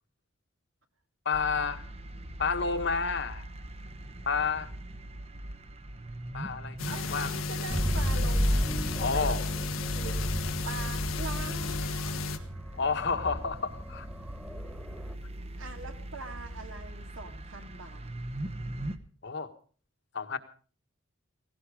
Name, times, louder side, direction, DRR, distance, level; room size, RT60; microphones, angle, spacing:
voice 1, 1.2-1.8 2.4-3.4 4.3-4.7 6.3-7.3 9.0-9.4 12.7-14.1 19.2-19.5 20.1-20.4, left 5 dB, 60° left, 7 dB, 1.5 m, -30 dB
sound 1, 1.3-19.0, right 1 dB, 30° right, 1.1 m, -42 dB
sound 2, 6.8-12.4, left 3 dB, 90° left, 1.5 m, -34 dB
voice 2, 6.9-8.8 9.1-10.2 10.6-12.4 15.6-18.1, right 3 dB, 75° right, 5 dB, 2.5 m, -43 dB
sound 3, 7.7-15.1, equal, 5° right, 1.7 m, -32 dB
17.0 x 17.0 x 4.9 m, 0.41 s
head